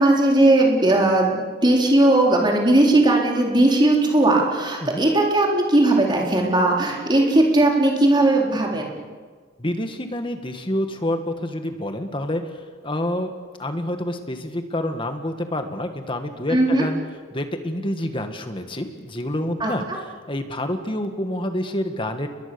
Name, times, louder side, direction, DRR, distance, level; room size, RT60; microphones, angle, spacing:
voice 1, 0.0-9.0 16.5-16.9 19.6-19.7, right 2 dB, 25° right, -1 dB, 4.1 m, -18 dB
voice 2, 9.6-13.3 13.6-17.0 17.3-22.3, left 1 dB, 25° left, 6 dB, 2.0 m, -28 dB
30.0 x 22.0 x 7.1 m, 1.5 s
head